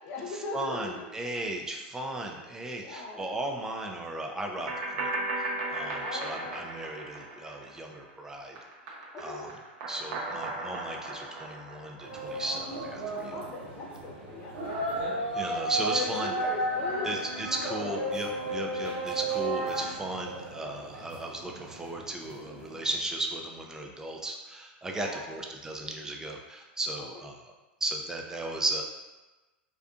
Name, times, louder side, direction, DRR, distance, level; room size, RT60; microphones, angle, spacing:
voice 1, 0.0-1.1 2.8-3.3 6.0-6.6 9.1-9.5 13.3-14.9 15.8-18.0 24.9-25.4 27.0-27.3, left 3 dB, 40° left, -2 dB, 0.8 m, -39 dB
voice 2, 0.5-8.6 9.2-9.5 9.9-13.4 15.3-16.3 17.0-27.3 27.8-28.8, right 2 dB, 10° right, 1 dB, 0.4 m, -35 dB
sound 1, 4.7-8.1 8.4-12.4, right 2 dB, 60° right, 0.6 m, -36 dB
sound 2, 12.0-22.9, right 2 dB, 80° right, 1.3 m, -34 dB
2.5 x 2.4 x 2.3 m, 1.1 s
hypercardioid pair, 105°, 6 cm